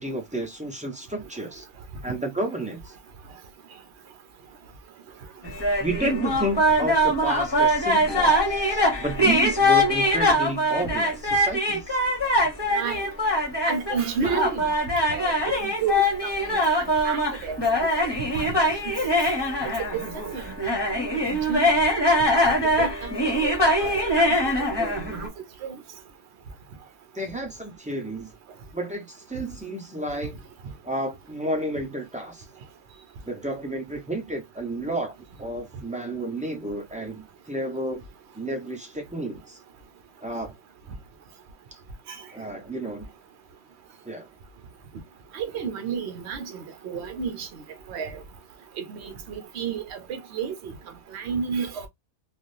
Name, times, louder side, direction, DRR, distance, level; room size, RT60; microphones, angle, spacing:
voice 1, 0.0-1.7 2.0-2.9 5.8-12.0 27.1-28.3 28.7-30.4 30.8-32.4 33.2-35.1 35.4-38.0 38.4-39.6 40.2-40.5 41.7-41.8 42.3-43.1 44.0-44.3, right 1 dB, 10° right, 0.3 m, -31 dB
sound 1, 5.4-25.3, equal, 20° left, 0.8 m, -23 dB
voice 2, 12.7-13.0 13.7-14.7 15.1-16.6 17.0-17.6 17.9-18.0 18.3-18.6 18.8-19.2 19.6-20.6 21.0-21.7 22.4-23.5 23.8-24.3 24.8-25.3 25.6-25.7 45.3-47.5 47.9-48.2 48.8-50.7 51.1-51.9, right 6 dB, 55° right, 1.0 m, -32 dB
3.3 x 2.4 x 2.6 m
omnidirectional pair, 1.5 m